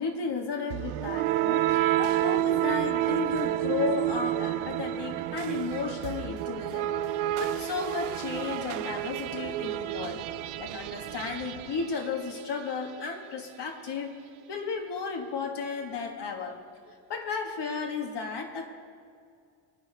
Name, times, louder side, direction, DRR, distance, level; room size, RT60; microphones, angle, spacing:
voice 1, 0.0-6.9 7.4-10.2 10.6-14.1 14.5-16.6 16.8-18.7, left 5 dB, 55° left, 2 dB, 1.6 m, -34 dB
sound 1, 0.7-12.6, right 14 dB, 90° right, 0.6 m, -30 dB
22.0 x 8.9 x 3.4 m, 2.3 s
cardioid pair, 85°, 48 cm